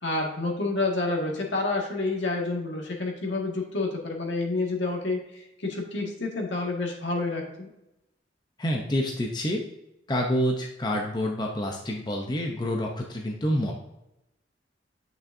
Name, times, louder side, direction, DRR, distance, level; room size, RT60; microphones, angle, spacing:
voice 1, 0.0-7.7, left 2 dB, 75° left, 0 dB, 1.8 m, -29 dB
voice 2, 8.6-9.6 10.1-13.7, equal, 25° left, 1 dB, 0.7 m, -27 dB
9.1 x 6.2 x 2.7 m, 0.90 s
head